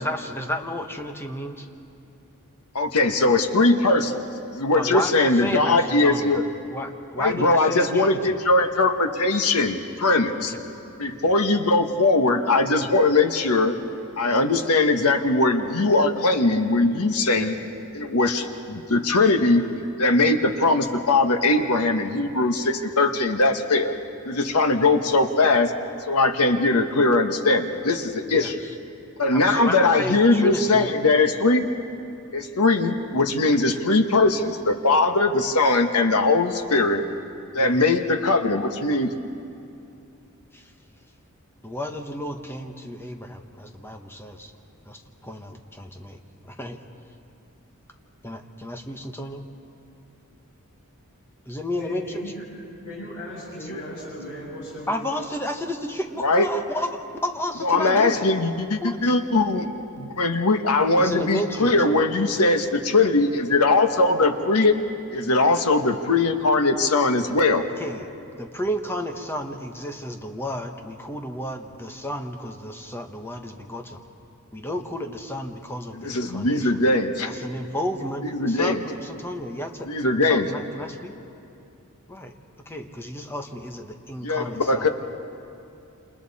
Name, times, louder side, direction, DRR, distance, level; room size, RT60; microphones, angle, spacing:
voice 1, 0.0-1.7 4.7-6.4 6.7-8.4 10.5-10.6 17.3-17.5 24.7-24.9 28.3-28.7 29.3-30.9 37.6-37.8 40.5-40.6 41.6-44.5 44.9-46.2 46.5-46.8 48.2-49.4 51.5-52.2 54.9-58.2 58.8-59.1 61.0-62.2 67.8-68.1 68.4-74.0 74.5-76.8 77.2-79.9 80.2-81.2 82.1-82.3 82.7-84.9, left 1 dB, 10° left, 4 dB, 1.2 m, -32 dB
voice 2, 2.7-4.2 4.5-6.4 7.2-10.5 11.0-13.7 14.2-17.6 17.9-19.7 20.0-23.9 24.3-25.7 26.0-28.6 29.2-31.7 32.3-37.0 37.5-39.1 53.7-53.8 56.2-56.5 57.6-59.7 60.0-64.7 65.1-67.7 75.9-77.3 78.2-78.8 79.9-80.5 84.2-84.9, left 2 dB, 90° left, 6 dB, 1.4 m, -20 dB
voice 3, 51.8-52.4 52.8-55.1, equal, 70° left, -8 dB, 7.4 m, -37 dB
28.0 x 28.0 x 4.2 m, 2.7 s
head